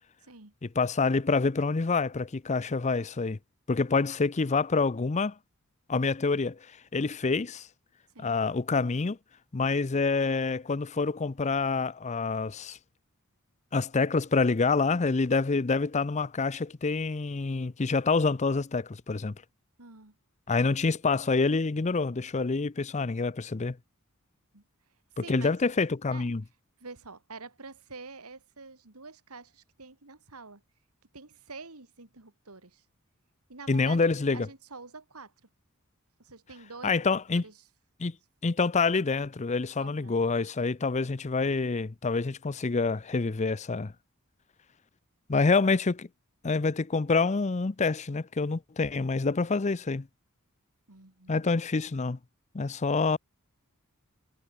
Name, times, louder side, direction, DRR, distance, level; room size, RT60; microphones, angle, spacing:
voice 1, 0.2-0.5 8.1-8.4 19.8-20.2 24.5-24.6 25.1-25.6 26.1-26.3 26.8-30.6 31.1-32.8 33.5-35.5 36.2-37.7 39.8-40.3 50.9-51.4, right 4 dB, 85° right, 2.8 m, -47 dB
voice 2, 0.8-3.4 3.7-5.3 5.9-6.6 6.9-7.7 8.2-9.2 9.5-12.8 13.7-19.3 20.5-23.8 25.2-26.4 33.7-34.5 36.8-37.4 38.0-38.1 38.4-43.9 45.3-46.1 46.4-50.1 51.3-52.2 52.5-53.2, left 4 dB, 30° left, 0.6 m, -27 dB
head